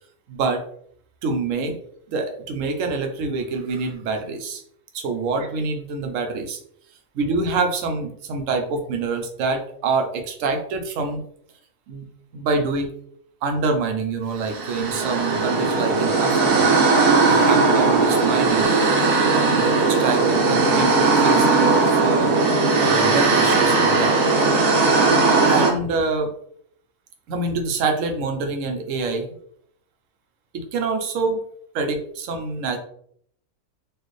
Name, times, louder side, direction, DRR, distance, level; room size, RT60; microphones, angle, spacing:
voice 1, 0.3-0.6 1.2-1.8 2.1-4.6 4.9-6.6 7.1-11.2 11.9-12.1 12.3-12.9 13.4-16.7 17.3-18.7 19.3-22.3 22.8-24.2 25.5-26.3 27.3-29.4 30.5-31.4 31.7-32.8, right 4 dB, 60° right, 4 dB, 1.0 m, -26 dB
sound 1, 14.4-25.7, right 3 dB, 80° right, 1.3 m, -18 dB
4.5 x 2.5 x 3.1 m, 0.66 s
omnidirectional pair, 1.6 m